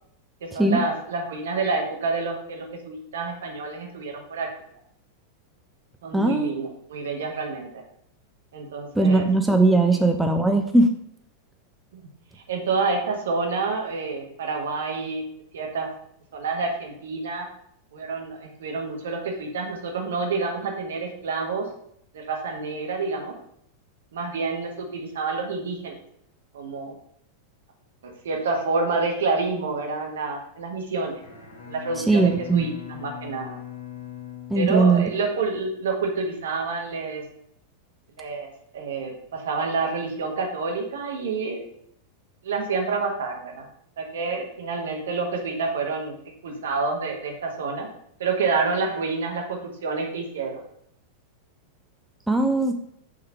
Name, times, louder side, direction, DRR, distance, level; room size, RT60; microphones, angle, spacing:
voice 1, 0.4-4.5 6.0-7.7 8.5-9.3 9.9-10.0 12.5-15.2 15.5-15.9 16.3-17.5 17.9-21.7 22.1-23.3 24.1-25.9 26.5-26.9 28.0-31.2 31.7-33.6 34.5-37.2 38.2-41.6 42.4-43.6 44.0-46.1 46.4-47.9 48.2-50.6, right 4 dB, 60° right, 1 dB, 1.6 m, -28 dB
voice 2, 6.1-6.5 9.0-10.9 32.1-32.7 34.5-35.0 52.3-52.7, right 2 dB, 5° right, 4 dB, 0.6 m, -19 dB
Bowed string instrument, 31.2-35.5, left 10 dB, 70° left, 1.9 m, -41 dB
6.3 x 3.8 x 5.8 m, 0.70 s
figure-of-eight pair, 90°, 0 cm